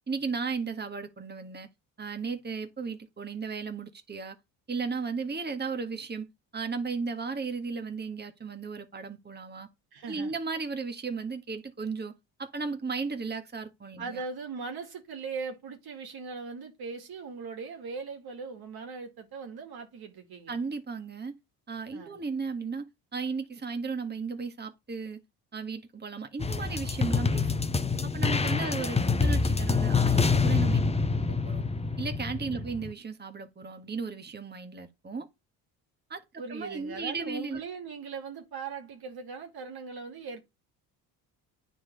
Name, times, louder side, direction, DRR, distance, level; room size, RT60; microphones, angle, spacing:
voice 1, 0.1-1.7 2.0-4.3 4.7-6.3 6.5-9.7 10.1-12.1 12.4-14.2 20.5-21.3 21.7-22.9 23.1-25.2 25.5-27.6 28.1-30.9 31.3-31.6 32.0-35.3 36.1-36.2 36.5-37.6, right 4 dB, 25° right, 1.6 m, -35 dB
voice 2, 9.9-10.3 14.0-20.5 21.9-22.2 28.6-29.1 32.5-32.7 36.4-40.4, right 5 dB, 60° right, 2.3 m, -40 dB
sound 1, 26.4-32.9, left 4 dB, 15° left, 0.8 m, -26 dB
9.5 x 4.1 x 5.2 m
supercardioid pair, 65°, 43 cm